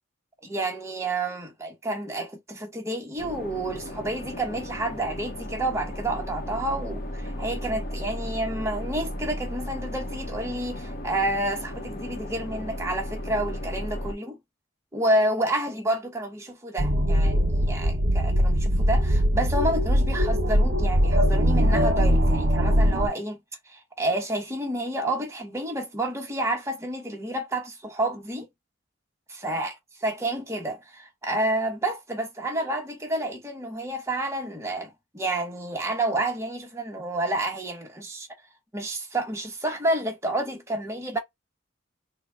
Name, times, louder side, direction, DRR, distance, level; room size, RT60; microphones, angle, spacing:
voice 1, 0.4-14.4 14.9-23.4 23.7-28.5 29.4-29.7 30.0-38.3 38.7-41.2, right 1 dB, 15° right, 1.0 m, -29 dB
sound 1, 3.2-14.1, left 1 dB, 45° left, 0.9 m, -35 dB
sound 2, 16.8-23.1, equal, 50° right, 1.2 m, -21 dB
3.8 x 2.2 x 4.3 m
head